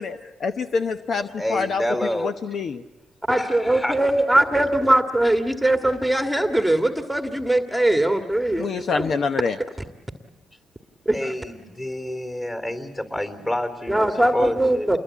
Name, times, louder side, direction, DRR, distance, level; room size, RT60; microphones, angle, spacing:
voice 1, 0.0-1.8 2.1-2.8 8.6-9.6, left 5 dB, 55° left, 8 dB, 0.8 m, -26 dB
voice 2, 1.4-2.3 3.4-4.0 8.3-8.5 11.1-15.0, left 1 dB, 20° left, 7 dB, 3.5 m, -28 dB
voice 3, 3.3-9.1 11.1-11.3 13.9-15.0, right 1 dB, ahead, 5 dB, 1.7 m, -21 dB
28.0 x 21.5 x 8.4 m, 1.1 s
cardioid pair, 90°, 0 cm